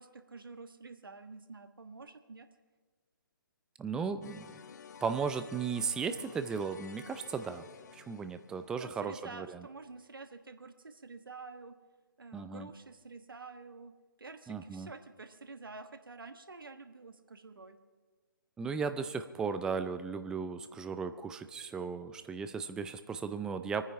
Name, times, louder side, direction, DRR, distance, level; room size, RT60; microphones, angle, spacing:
voice 1, 0.0-2.5 8.8-11.8 12.2-13.9 14.2-17.8, right 3 dB, 75° right, 9 dB, 1.4 m, -49 dB
voice 2, 3.8-4.5 5.0-7.6 7.9-9.6 12.3-12.7 14.5-14.9 18.6-23.8, right 5 dB, 5° right, 10 dB, 0.4 m, -36 dB
sound 1, 4.2-9.1, left 7 dB, 50° left, 0.8 m, -52 dB
24.5 x 9.6 x 5.7 m, 1.4 s
figure-of-eight pair, 140°, 12 cm